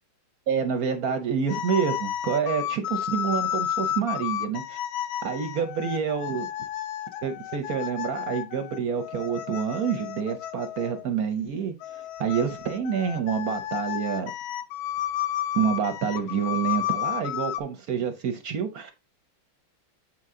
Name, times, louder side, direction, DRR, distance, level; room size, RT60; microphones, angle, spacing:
voice 1, 0.5-4.8 5.2-6.5 7.2-14.3 15.5-18.9, right 7 dB, 60° right, 1.0 m, -28 dB
sound 1, 1.5-11.1 11.8-17.6, left 11 dB, 85° left, 1.4 m, -32 dB
8.2 x 4.4 x 3.6 m
omnidirectional pair, 2.2 m